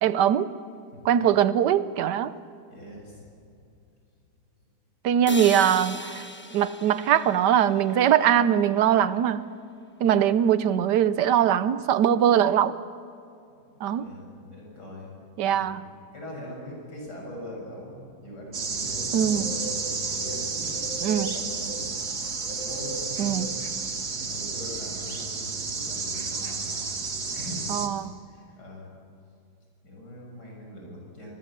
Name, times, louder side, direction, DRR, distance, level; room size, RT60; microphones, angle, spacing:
voice 1, 0.0-0.5 1.0-2.3 5.0-6.2 6.5-9.4 10.0-12.8 13.8-14.1 15.4-15.8 19.1-19.5 21.0-21.3 23.2-23.5 27.7-28.1, right 9 dB, 80° right, 14 dB, 1.4 m, -22 dB
voice 2, 2.7-3.2 5.3-5.4 13.8-15.6 16.1-19.8 20.1-21.9 22.5-23.7 24.1-26.8 27.3-27.7 28.3-28.9 29.8-31.4, left 1 dB, 75° left, -1 dB, 7.4 m, -42 dB
sound 1, 5.3-9.3, left 1 dB, 15° left, 0.4 m, -40 dB
sound 2, 18.5-27.9, right 4 dB, 65° right, 2.4 m, -31 dB
25.0 x 20.5 x 7.4 m, 2.5 s
omnidirectional pair, 1.8 m